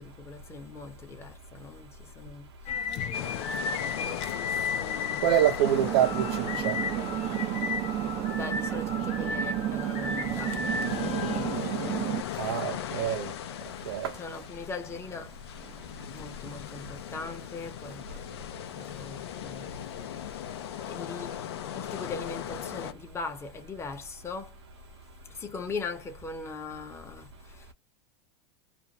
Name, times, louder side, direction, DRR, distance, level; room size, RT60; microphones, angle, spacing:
voice 1, 0.0-2.5 3.1-5.5 8.3-10.9 14.2-18.3 18.7-19.7 20.7-24.6 25.3-27.7, left 4 dB, 20° left, 0.9 m, -41 dB
sound 1, 2.7-11.6, left 5 dB, 45° left, 0.7 m, -34 dB
sound 2, 3.1-22.9, left 10 dB, 85° left, 0.6 m, -39 dB
voice 2, 5.2-6.8 12.4-13.3 13.9-14.2, right 11 dB, 80° right, 0.8 m, -26 dB
sound 3, 5.6-12.2, right 13 dB, 40° right, 0.5 m, -31 dB
2.5 x 2.2 x 2.8 m
supercardioid pair, 120°, 13 cm